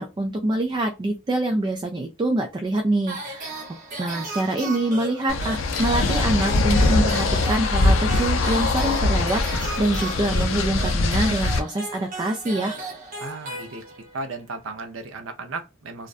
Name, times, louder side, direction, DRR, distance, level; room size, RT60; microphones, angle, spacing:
voice 1, 0.0-3.6 4.0-12.7, right 1 dB, 20° right, 0.3 m, -25 dB
sound 1, 3.1-14.2, right 2 dB, 40° right, 0.9 m, -36 dB
sound 2, 5.3-11.6, left 3 dB, 75° left, 0.4 m, -22 dB
voice 2, 13.2-13.8 14.1-16.1, right 3 dB, 70° right, 0.6 m, -35 dB
2.4 x 2.1 x 2.4 m
head